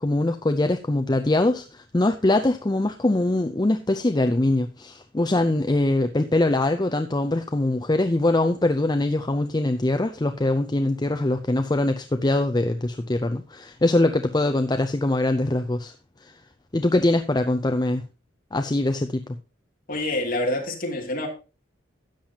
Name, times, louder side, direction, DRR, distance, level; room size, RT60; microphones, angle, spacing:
voice 1, 0.0-15.9 16.2-16.3 16.7-18.0 18.5-19.4, left 2 dB, 20° left, 8 dB, 0.5 m, -23 dB
voice 2, 19.9-21.3, left 1 dB, 45° left, 0 dB, 2.8 m, -26 dB
13.0 x 8.8 x 2.8 m, 0.32 s
head